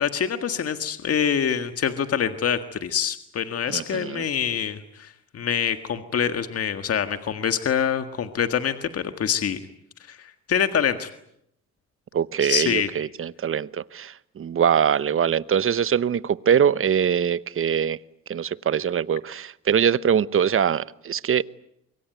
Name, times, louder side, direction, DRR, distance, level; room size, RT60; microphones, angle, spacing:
voice 1, 0.0-9.6 10.1-11.1 12.4-12.9, left 8 dB, 50° left, 1.8 m, -25 dB
voice 2, 3.7-4.2 12.1-18.0 18.3-21.4, right 8 dB, 45° right, 1.0 m, -23 dB
24.5 x 23.5 x 9.4 m
cardioid pair, 90°, 30 cm